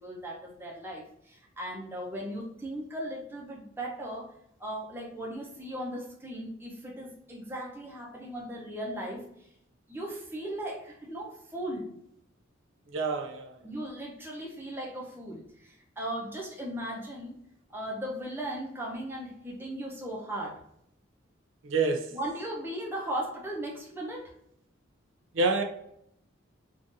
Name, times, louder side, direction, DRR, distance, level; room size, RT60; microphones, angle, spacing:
voice 1, 0.0-4.3 4.6-9.2 9.9-11.9 13.6-17.4 17.7-20.6 22.1-24.3, right 1 dB, 10° right, 0.7 m, -37 dB
voice 2, 12.9-13.6 21.6-22.2 25.3-25.6, right 3 dB, 75° right, 0.5 m, -27 dB
3.6 x 2.5 x 2.6 m
head